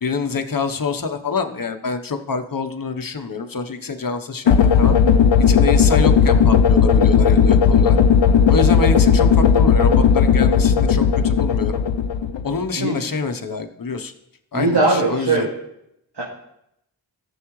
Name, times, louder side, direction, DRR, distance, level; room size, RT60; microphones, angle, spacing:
voice 1, 0.0-5.0 5.5-8.0 8.5-11.8 12.4-14.1 14.5-15.5, left 4 dB, 50° left, 6 dB, 1.0 m, -26 dB
sound 1, 4.5-12.7, left 7 dB, 80° left, 0.7 m, -15 dB
voice 2, 14.5-15.5 16.2-16.3, right 3 dB, 65° right, -5 dB, 2.3 m, -19 dB
15.0 x 7.3 x 3.2 m, 0.81 s
cardioid pair, 45°, 44 cm